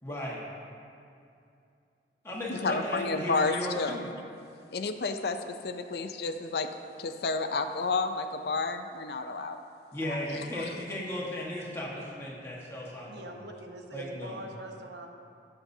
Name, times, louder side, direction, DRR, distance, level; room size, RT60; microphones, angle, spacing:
voice 1, 0.0-0.5 2.2-4.1 9.9-13.4 13.9-14.4, left 1 dB, 15° left, -5 dB, 1.4 m, -36 dB
voice 2, 2.5-4.0 4.7-6.7 7.0-9.6 10.0-10.7, left 3 dB, 60° left, 7 dB, 0.5 m, -31 dB
voice 3, 13.1-15.1, right 1 dB, 80° right, 3 dB, 0.9 m, -43 dB
17.0 x 6.7 x 2.7 m, 2.5 s
head